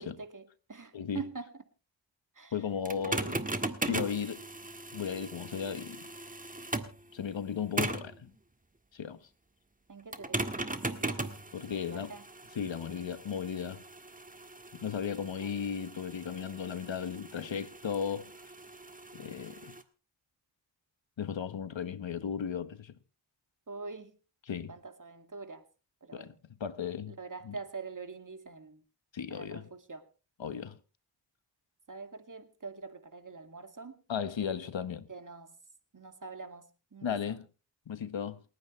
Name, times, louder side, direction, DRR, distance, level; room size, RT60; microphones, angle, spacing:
voice 1, 0.0-1.6 2.3-2.6 3.0-3.4 9.9-11.4 11.7-12.3 15.2-15.5 23.7-24.2 24.7-25.7 26.0-26.4 27.1-28.8 29.3-30.0 31.9-34.0 35.1-35.6 35.9-37.4, right 4 dB, 45° right, 2.3 m, -45 dB
voice 2, 2.5-3.3 3.8-4.4 4.9-6.1 7.1-8.3 8.9-9.2 11.5-12.1 12.5-13.8 14.7-18.3 19.1-19.8 21.2-22.9 24.5-24.7 26.1-26.3 26.6-27.2 27.4-27.6 29.1-29.7 30.4-30.8 34.1-35.1 37.0-37.4 37.9-38.4, left 7 dB, 80° left, 1.3 m, -35 dB
sound 1, 2.9-7.0 7.8-8.2 10.1-19.8, right 2 dB, 20° right, 1.7 m, -38 dB
28.5 x 9.6 x 3.2 m
cardioid pair, 50°, 44 cm